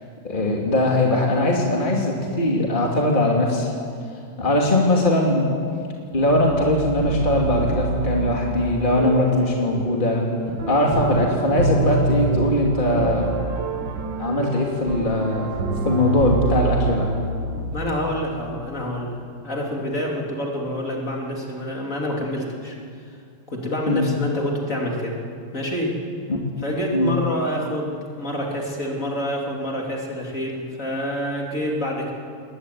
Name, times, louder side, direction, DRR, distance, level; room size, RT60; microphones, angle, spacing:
voice 1, 0.2-3.7 4.4-5.5 6.1-10.2 10.7-13.3 14.2-15.5 15.8-17.1 23.9-24.1 26.3-26.4 26.9-27.1, left 1 dB, 25° left, -1 dB, 2.9 m, -20 dB
sound 1, 6.2-18.3, right 4 dB, 65° right, 2.1 m, -27 dB
voice 2, 17.7-22.8 23.5-25.2 25.5-26.0 26.6-32.1, equal, 40° left, -1 dB, 3.6 m, -27 dB
22.0 x 20.5 x 9.5 m, 2.3 s
omnidirectional pair, 2.2 m